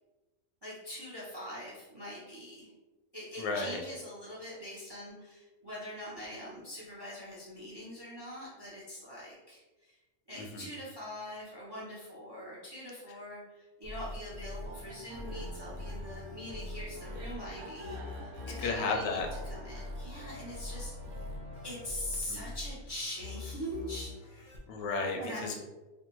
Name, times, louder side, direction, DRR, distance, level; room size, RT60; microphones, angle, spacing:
voice 1, 0.6-2.7 3.1-10.0 10.3-21.2 21.6-24.5 25.2-25.5, left 1 dB, 35° right, -7 dB, 0.4 m, -43 dB
voice 2, 3.4-3.8 10.4-10.7 18.6-19.3 22.3-22.4 24.7-25.5, left 4 dB, 85° left, 1 dB, 1.0 m, -33 dB
sound 1, 13.8-24.6, left 2 dB, 60° left, 0.5 m, -43 dB
sound 2, 14.6-21.9, equal, 75° right, 0.9 m, -47 dB
2.5 x 2.2 x 2.9 m, 1.1 s
omnidirectional pair, 1.3 m